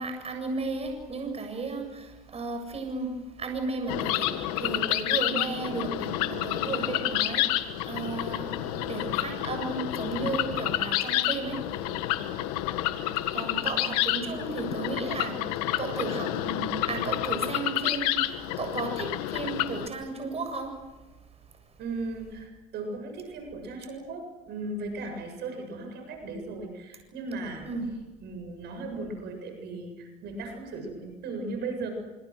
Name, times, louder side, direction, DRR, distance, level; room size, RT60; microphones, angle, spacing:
voice 1, 0.0-12.0 13.3-20.7 27.7-27.9, right 3 dB, 35° right, 4 dB, 7.6 m, -34 dB
sound 1, 3.9-19.9, left 14 dB, 90° left, 1.7 m, -29 dB
voice 2, 21.8-27.7 28.2-31.9, right 3 dB, 65° right, 4 dB, 7.5 m, -37 dB
26.5 x 26.0 x 6.4 m, 1.2 s
supercardioid pair, 85°, 19 cm